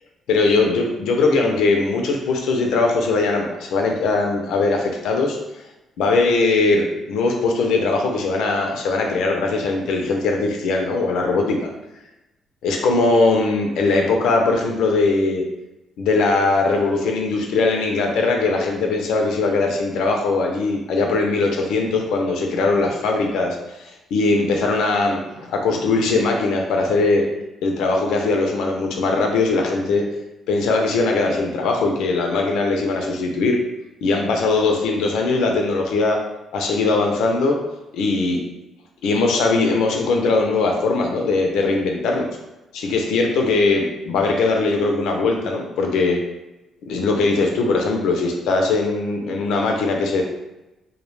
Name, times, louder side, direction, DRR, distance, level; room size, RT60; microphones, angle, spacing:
voice 1, 0.3-5.4 6.0-11.7 12.6-15.4 16.0-23.6 24.1-27.2 27.6-30.0 30.5-33.6 34.0-36.2 36.5-37.6 37.9-38.4 39.0-42.3 42.7-46.2 46.9-50.2, left 3 dB, 85° left, 2 dB, 0.4 m, -20 dB
2.2 x 2.0 x 3.0 m, 0.97 s
cardioid pair, 90°, 0 cm